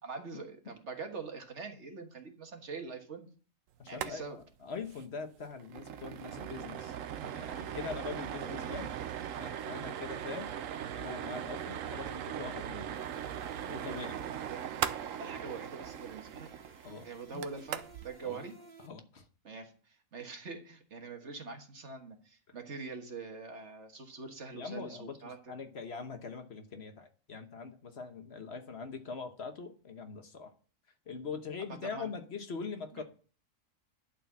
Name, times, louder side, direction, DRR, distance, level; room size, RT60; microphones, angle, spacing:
voice 1, 0.0-3.3 3.8-4.4 14.4-14.6 15.2-16.5 17.0-18.5 19.4-25.4 31.8-32.1 32.9-33.0, right 4 dB, 60° right, 5 dB, 1.7 m, -44 dB
voice 2, 3.8-8.9 9.4-10.5 11.0-13.1 13.6-14.2 16.8-17.4 18.2-18.4 18.8-19.3 24.5-30.5 31.1-33.0, left 5 dB, 55° left, 7 dB, 1.3 m, -43 dB
sound 1, 3.9-4.1 4.4-4.5 4.8-5.0 5.4-18.1, right 9 dB, 80° right, 1.1 m, -39 dB
sound 2, 12.9-18.9, right 3 dB, 45° right, 2.1 m, -57 dB
11.5 x 4.4 x 7.1 m, 0.40 s
omnidirectional pair, 1.4 m